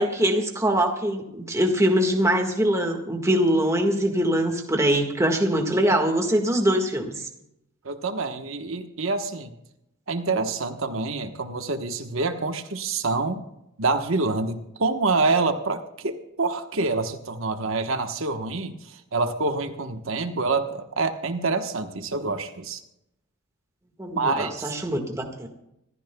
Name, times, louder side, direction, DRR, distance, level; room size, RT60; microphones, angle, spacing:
voice 1, 0.0-7.3 24.0-25.5, right 1 dB, 15° right, 3 dB, 1.7 m, -23 dB
voice 2, 7.8-9.5 10.1-13.4 13.8-22.8 24.1-24.7, right 3 dB, 70° right, 6 dB, 1.2 m, -26 dB
26.0 x 14.5 x 2.3 m, 0.83 s
head